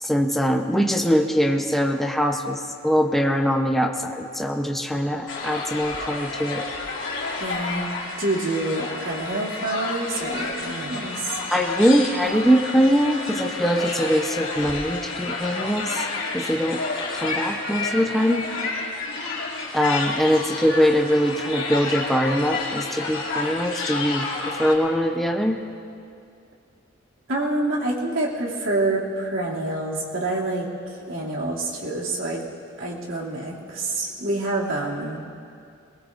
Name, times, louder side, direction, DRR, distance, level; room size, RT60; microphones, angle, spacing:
voice 1, 0.0-6.6 11.5-16.1 16.3-16.8 17.1-18.5 19.7-25.6, equal, ahead, 2 dB, 0.7 m, -22 dB
sound 1, 5.3-24.7, left 3 dB, 85° left, 2.7 m, -30 dB
voice 2, 7.4-7.9 8.2-11.4 27.3-32.4 32.8-35.2, right 2 dB, 90° right, -4 dB, 2.6 m, -27 dB
22.0 x 19.5 x 2.6 m, 2.4 s
head